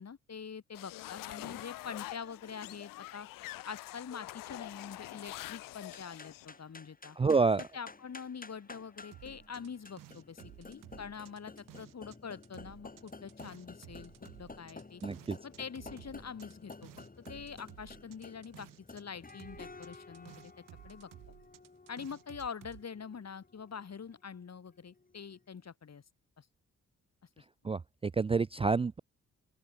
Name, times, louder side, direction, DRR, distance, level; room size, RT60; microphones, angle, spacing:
voice 1, 0.0-3.3 3.6-7.2 7.6-14.1 14.4-15.0 15.4-16.9 17.3-20.5 20.8-21.1 21.9-26.0 26.4-26.5 27.4-27.5, left 6 dB, 55° left, 4.9 m, -45 dB
sound 1, 0.7-6.5, left 17 dB, 90° left, 1.3 m, -45 dB
sound 2, 5.9-25.4, left 3 dB, 25° left, 2.6 m, -53 dB
voice 2, 7.2-7.6 15.0-15.4 27.6-29.0, right 4 dB, 20° right, 0.4 m, -28 dB
sound 3, 9.1-12.2 12.4-19.0 19.3-22.8, right 14 dB, 85° right, 3.6 m, -54 dB
open air
supercardioid pair, 50°, 32 cm